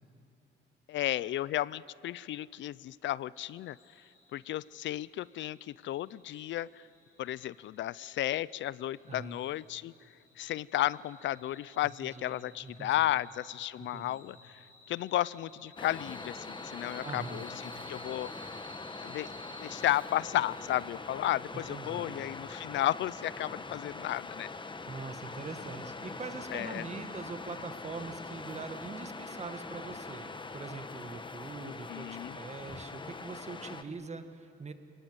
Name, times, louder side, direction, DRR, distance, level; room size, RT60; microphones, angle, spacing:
voice 1, 0.9-3.8 4.3-6.8 7.2-9.9 10.4-14.6 14.9-18.5 19.0-19.3 19.6-24.5 26.5-26.8 31.6-32.4, left 13 dB, 70° left, 21 dB, 0.5 m, -33 dB
sound 1, 3.4-20.8, equal, 40° left, 7.0 m, -56 dB
voice 2, 9.1-9.4 12.0-13.1 13.8-14.2 17.0-17.5 21.5-22.3 24.9-34.7, right 4 dB, 35° right, 9 dB, 1.9 m, -43 dB
Waves surf, 15.8-33.8, left 3 dB, 25° left, 1.3 m, -43 dB
29.0 x 19.0 x 8.1 m, 2.8 s
cardioid pair, 90°, 20 cm